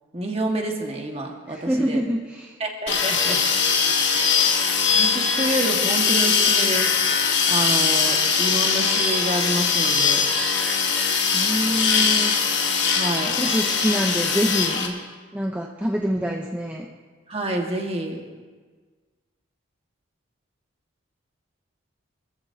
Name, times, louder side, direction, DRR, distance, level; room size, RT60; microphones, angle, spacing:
voice 1, 0.1-2.0 2.6-3.4 4.1-4.6 4.9-10.3 12.9-13.3 17.3-18.2, right 1 dB, 30° right, 1 dB, 1.6 m, -28 dB
voice 2, 1.5-2.6 11.3-12.3 13.2-15.0 15.3-16.9, equal, 10° right, 0 dB, 0.6 m, -26 dB
sound 1, 2.9-14.9, left 5 dB, 60° left, 1.9 m, -21 dB
24.5 x 14.5 x 2.7 m, 1.5 s
head